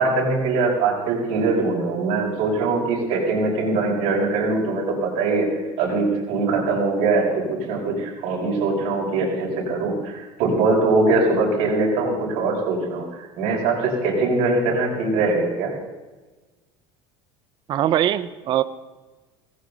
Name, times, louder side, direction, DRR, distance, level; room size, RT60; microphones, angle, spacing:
voice 1, 0.0-5.5 5.8-13.1 13.4-15.7, right 3 dB, 60° right, -3 dB, 6.8 m, -22 dB
voice 2, 17.7-18.6, right 12 dB, 35° right, 14 dB, 0.6 m, -21 dB
18.5 x 16.0 x 4.1 m, 1.2 s
cardioid pair, 145°, 13 cm